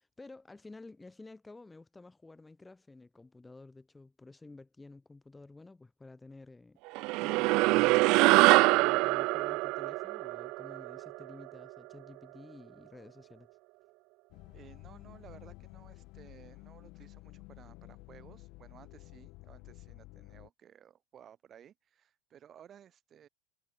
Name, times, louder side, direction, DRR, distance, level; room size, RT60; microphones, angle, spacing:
voice 1, 0.0-6.8 7.2-13.5, left 3 dB, 5° left, 2.5 m, -52 dB
sound 1, 7.0-11.6, right 24 dB, 40° right, 0.3 m, -25 dB
sound 2, 14.3-20.5, left 23 dB, 40° left, 2.3 m, -52 dB
voice 2, 14.5-23.3, right 9 dB, 20° right, 4.1 m, -57 dB
supercardioid pair, 165°, 0 cm